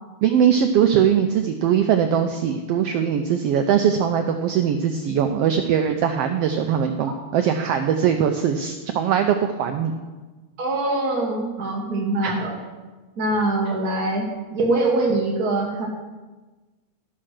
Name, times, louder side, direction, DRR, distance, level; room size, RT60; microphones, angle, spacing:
voice 1, 0.2-9.9 12.2-12.3, right 8 dB, 85° right, 6 dB, 1.3 m, -21 dB
voice 2, 10.6-12.6 13.2-15.9, right 2 dB, 50° right, -1 dB, 1.2 m, -23 dB
13.0 x 5.9 x 6.4 m, 1.2 s
omnidirectional pair, 3.4 m